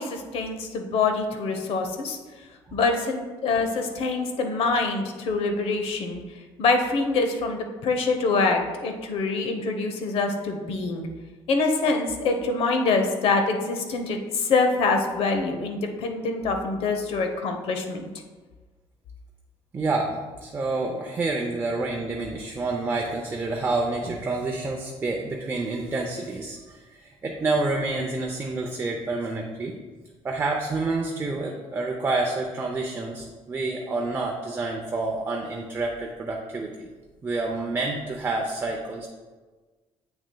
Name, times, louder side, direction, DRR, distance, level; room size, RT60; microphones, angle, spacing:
voice 1, 0.0-2.2 2.7-6.2 6.6-11.1 11.5-18.1, left 3 dB, 65° left, 5 dB, 0.9 m, -25 dB
voice 2, 19.7-29.8 30.2-36.9 37.2-39.1, right 3 dB, 20° right, 1 dB, 0.5 m, -28 dB
8.1 x 6.1 x 2.3 m, 1.3 s
cardioid pair, 140°, 11 cm